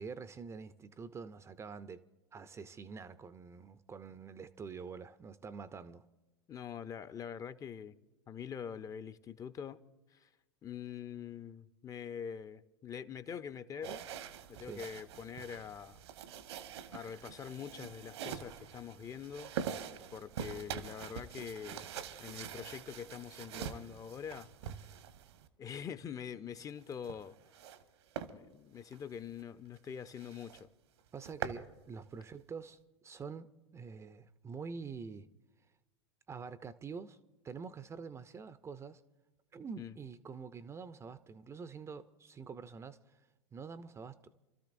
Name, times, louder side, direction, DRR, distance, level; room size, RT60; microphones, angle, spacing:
voice 1, 0.0-2.0 2.3-6.0 14.6-14.8 31.1-35.3 36.3-37.2 37.4-39.0 39.5-43.2 43.5-44.2, right 5 dB, 20° right, 0.5 m, -46 dB
voice 2, 6.5-7.9 8.3-9.8 10.1-10.3 10.6-14.0 14.5-16.0 16.9-19.5 20.1-21.9 22.2-24.9 25.6-27.4 28.3-30.7 39.8-39.9, left 8 dB, 25° left, 0.6 m, -44 dB
sound 1, 13.8-25.5 26.8-27.8 28.1-28.3 28.8-29.0 29.4-29.5 29.8-29.9 30.2-30.6 31.0-31.6, right 8 dB, 65° right, 1.1 m, -44 dB
29.0 x 13.0 x 2.6 m
figure-of-eight pair, 90°, 15 cm